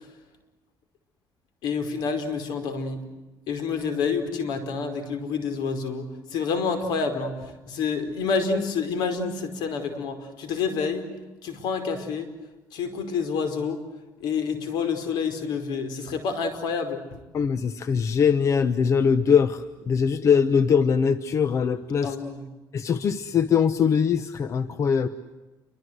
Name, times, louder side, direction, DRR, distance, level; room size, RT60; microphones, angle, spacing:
voice 1, 1.6-3.0 3.5-11.1 11.4-12.3 12.7-13.8 14.2-17.0 22.0-22.4, left 5 dB, 75° left, 8 dB, 5.1 m, -28 dB
voice 2, 17.3-22.2 22.7-25.1, left 6 dB, 45° left, 13 dB, 1.1 m, -22 dB
29.5 x 24.5 x 8.1 m, 1.1 s
cardioid pair, 125°, 7 cm